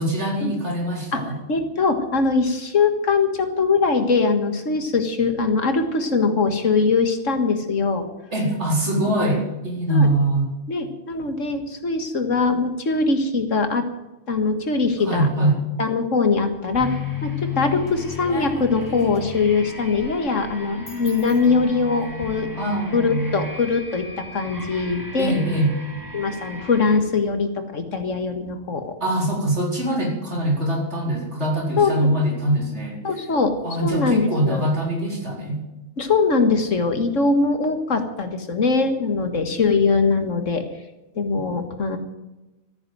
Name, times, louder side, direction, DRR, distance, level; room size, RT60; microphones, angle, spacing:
voice 1, 0.0-1.4 8.3-10.5 15.0-15.6 22.5-23.5 25.2-25.7 29.0-33.0 33.6-35.6, right 1 dB, 60° right, -1 dB, 4.6 m, -23 dB
voice 2, 1.5-8.0 9.9-10.1 10.7-13.9 14.3-15.5 15.8-17.0 17.2-22.5 22.9-25.3 26.1-29.0 31.8-32.1 33.0-33.5 33.8-34.7 36.0-40.6 41.2-42.0, left 4 dB, 70° left, 7 dB, 2.1 m, -22 dB
sound 1, 16.5-17.2 17.6-22.3, left 1 dB, 35° left, 4.1 m, -41 dB
sound 2, 16.8-27.0, left 5 dB, 15° left, 2.2 m, -35 dB
14.0 x 9.6 x 9.5 m, 1.0 s
omnidirectional pair, 1.3 m